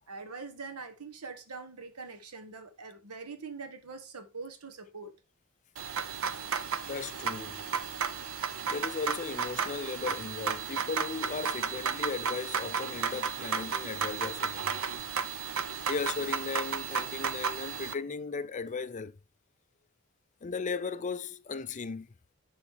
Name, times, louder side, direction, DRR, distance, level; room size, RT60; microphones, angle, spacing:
voice 1, 0.1-5.1, right 4 dB, 90° right, 1.2 m, -43 dB
sound 1, 5.8-17.9, right 6 dB, 65° right, 0.7 m, -33 dB
voice 2, 6.8-7.6 8.7-14.7 15.9-19.1 20.4-22.1, left 4 dB, 35° left, 0.4 m, -36 dB
10.5 x 3.9 x 3.6 m
head